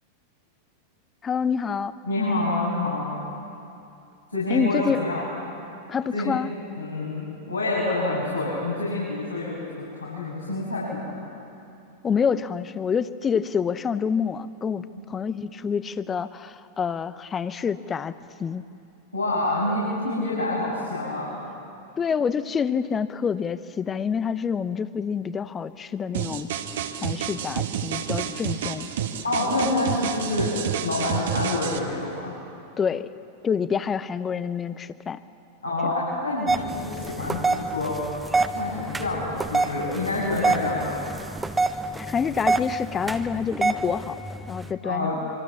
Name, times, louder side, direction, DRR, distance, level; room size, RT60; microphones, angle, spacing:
voice 1, 1.2-1.9 4.5-5.0 5.9-6.5 12.0-18.1 18.4-18.6 22.0-26.6 27.0-28.9 32.8-33.1 33.4-35.2 41.9-45.3, left 6 dB, 20° left, 15 dB, 0.9 m, -27 dB
voice 2, 2.0-3.1 4.3-5.2 6.1-6.5 6.8-11.2 19.1-21.4 29.2-32.3 35.6-38.2 38.5-41.0 44.8-45.2, left 2 dB, 85° left, -8 dB, 7.1 m, -27 dB
sound 1, 26.1-31.8, right 9 dB, 60° right, 1.7 m, -29 dB
sound 2, 36.5-44.7, right 3 dB, 10° right, 1.2 m, -27 dB
26.0 x 25.0 x 7.2 m, 2.6 s
figure-of-eight pair, 90°, 0 cm